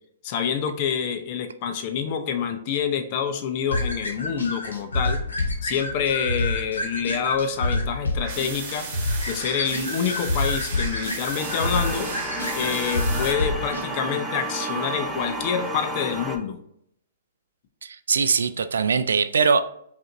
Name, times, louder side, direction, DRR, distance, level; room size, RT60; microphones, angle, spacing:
voice 1, 0.2-5.2 5.6-12.1 12.5-16.6, left 7 dB, 45° left, 7 dB, 0.7 m, -27 dB
sound 1, 3.7-13.8, left 2 dB, 85° left, 1.0 m, -28 dB
sound 2, 8.2-13.3, right 4 dB, 40° right, 1.3 m, -35 dB
sound 3, 11.4-16.4, right 1 dB, 5° right, 0.7 m, -31 dB
voice 2, 17.8-19.6, right 5 dB, 80° right, 11 dB, 0.3 m, -21 dB
5.0 x 2.7 x 2.6 m, 0.70 s
hypercardioid pair, 120°, 0 cm